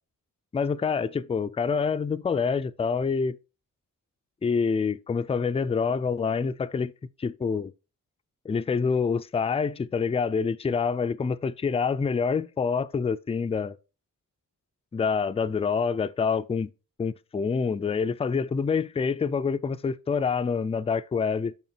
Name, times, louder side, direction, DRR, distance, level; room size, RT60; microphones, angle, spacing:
voice 1, 0.5-3.4 4.4-6.9 7.2-7.7 8.5-13.8 14.9-16.7 17.0-21.5, left 5 dB, 20° left, 0.3 m, -26 dB
10.5 x 3.6 x 4.2 m
wide cardioid pair, 130°, 33 cm